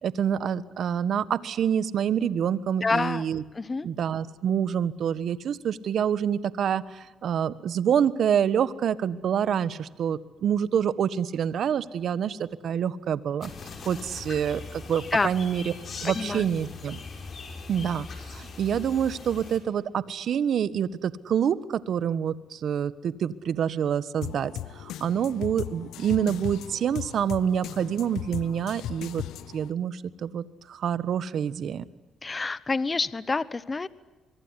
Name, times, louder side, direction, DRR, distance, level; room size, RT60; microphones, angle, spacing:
voice 1, 0.0-3.4 3.8-13.5 13.8-15.7 16.0-17.0 17.7-29.2 29.5-31.8, right 8 dB, 65° right, 17 dB, 1.4 m, -27 dB
voice 2, 2.8-3.3 3.5-3.9 15.1-15.3 16.0-16.5 32.2-33.9, left 3 dB, 25° left, 17 dB, 1.1 m, -27 dB
sound 1, 13.4-19.6, left 4 dB, 50° left, 6.5 m, -40 dB
sound 2, 24.2-29.7, left 12 dB, 85° left, 0.9 m, -37 dB
25.0 x 23.5 x 9.9 m, 1.2 s
cardioid pair, 90°, 0 cm